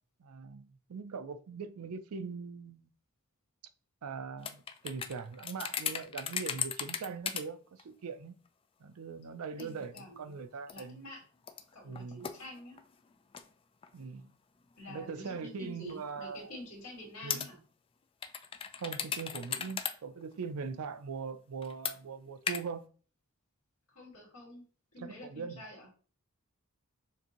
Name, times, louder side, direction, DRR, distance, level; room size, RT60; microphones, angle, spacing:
voice 1, 0.2-2.9 4.0-8.4 8.8-11.0 11.8-12.3 13.9-14.3 14.9-16.5 17.2-17.5 18.8-22.9 25.0-25.6, right 5 dB, 70° right, 0.5 m, -41 dB
sound 1, 4.4-7.4 7.8-7.9 8.5-8.6 9.6-10.2 10.7-10.8 11.4-13.5 13.8-13.9 14.7-14.9 15.9-16.0 17.3-17.5 18.2-19.9 20.2-20.3 21.6-22.0 22.5-22.6, left 7 dB, 25° left, 0.3 m, -37 dB
voice 2, 9.6-10.4 10.7-11.2 11.7-12.8 14.8-17.6 23.9-24.6 24.9-25.9, left 1 dB, 70° left, 2.3 m, -48 dB
6.6 x 2.6 x 2.9 m
head